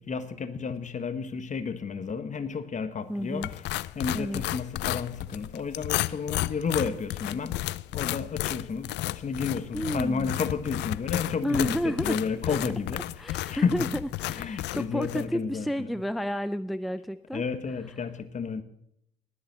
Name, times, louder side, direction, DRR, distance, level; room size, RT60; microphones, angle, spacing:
voice 1, 0.0-3.4 3.9-7.6 7.9-13.9 14.3-15.9 17.3-18.6, left 5 dB, 40° left, 10 dB, 1.6 m, -32 dB
voice 2, 3.1-3.5 4.1-4.4 9.7-10.3 11.4-12.2 12.5-12.6 13.2-17.4, equal, ahead, 12 dB, 0.5 m, -31 dB
sound 1, 3.4-15.3, left 17 dB, 65° left, 0.5 m, -33 dB
19.5 x 7.4 x 4.3 m, 0.74 s
hypercardioid pair, 55°, 19 cm